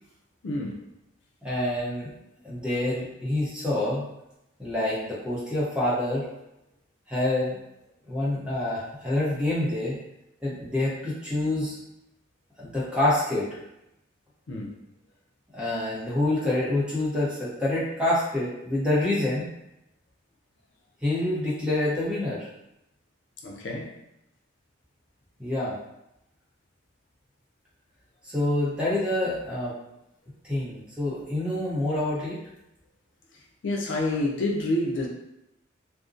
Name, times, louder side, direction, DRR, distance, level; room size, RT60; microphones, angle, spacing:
voice 1, 0.4-0.8 14.5-14.8 23.4-24.0 33.6-35.1, left 1 dB, 65° left, 0 dB, 0.5 m, -28 dB
voice 2, 1.4-2.1 2.4-4.1 4.6-6.3 7.1-7.6 8.1-10.0 10.4-11.8 12.6-13.6 15.5-19.5 21.0-22.5 25.4-25.8 28.2-29.8 30.4-32.4, left 1 dB, 5° right, -8 dB, 0.7 m, -27 dB
2.5 x 2.1 x 2.5 m, 0.85 s
head